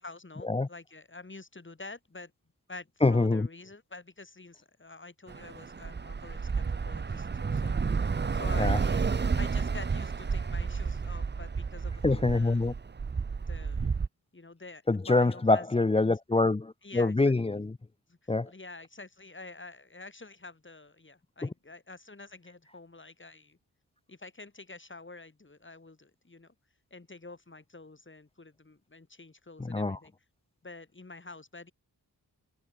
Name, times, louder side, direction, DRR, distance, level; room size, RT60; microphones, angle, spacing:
voice 1, 0.0-2.3 2.7-8.0 8.3-9.0 9.4-12.7 13.3-13.9 14.3-15.7 16.8-17.3 18.1-23.6 24.1-26.5 26.9-30.1 30.6-31.7, left 3 dB, 30° left, 6.4 m, -47 dB
voice 2, 3.0-3.5 8.6-8.8 12.0-12.7 14.9-17.7 18.3-18.5 21.4-21.5 29.6-30.0, left 3 dB, 15° left, 0.6 m, -25 dB
Bus / Traffic noise roadway noise, 5.3-14.1, right 5 dB, 30° right, 0.6 m, -31 dB
wide cardioid pair, 100°, 37 cm